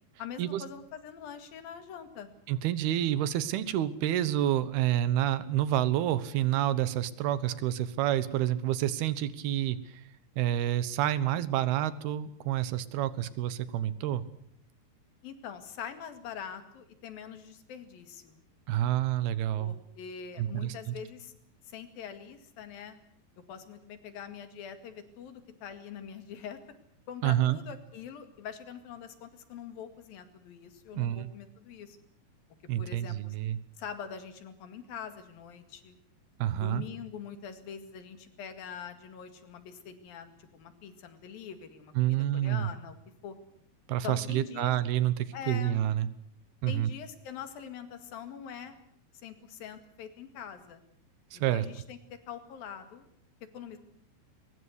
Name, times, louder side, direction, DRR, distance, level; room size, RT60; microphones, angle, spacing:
voice 1, 0.2-2.3 15.2-18.4 19.6-21.3 21.7-23.0 23.5-26.6 27.1-32.0 32.8-33.4 33.8-36.0 36.6-43.0 43.2-43.4 44.0-44.8 45.3-45.8 46.7-48.8 49.2-50.8 51.3-53.1 53.5-53.8, left 8 dB, 70° left, 9 dB, 3.8 m, -44 dB
voice 2, 2.5-10.0 10.4-14.2 18.7-19.7 20.4-21.0 27.2-27.6 30.9-31.3 32.7-33.6 36.4-36.8 42.0-42.7 43.9-46.1 46.6-46.9 51.3-51.7, right 12 dB, 80° right, 15 dB, 3.1 m, -28 dB
22.5 x 21.0 x 8.2 m, 0.68 s
omnidirectional pair, 4.5 m